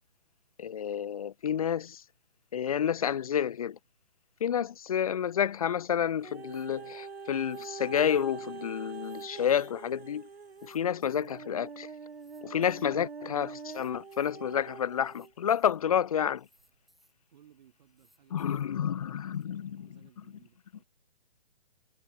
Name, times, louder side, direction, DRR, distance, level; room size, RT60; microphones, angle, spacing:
voice 1, 0.6-2.0 2.5-3.8 4.4-10.3 10.6-11.9 12.4-16.5 18.3-19.9, left 9 dB, 35° left, 0.5 m, -30 dB
sound 1, 6.2-15.3 16.0-16.1, right 5 dB, 75° right, 1.4 m, -44 dB
sound 2, 6.5-6.7 7.4-7.7 8.0-8.2 8.9-9.7 10.4-11.4 12.1-12.9 13.6-14.3 14.9-15.8 16.4-17.1 17.9-18.7 19.3-19.5, equal, ahead, 2.2 m, -67 dB
voice 2, 17.3-18.8 19.1-20.9, right 10 dB, 45° right, 6.9 m, -62 dB
figure-of-eight pair, 135°, 31 cm